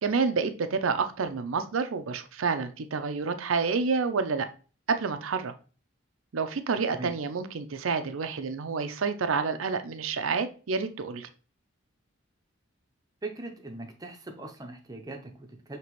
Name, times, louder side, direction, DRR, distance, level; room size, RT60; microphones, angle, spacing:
voice 1, 0.0-4.5 4.9-5.5 6.3-11.3, right 5 dB, 85° right, 0.6 m, -29 dB
voice 2, 13.2-15.8, right 2 dB, 20° right, 0.7 m, -40 dB
5.8 x 3.0 x 3.0 m
head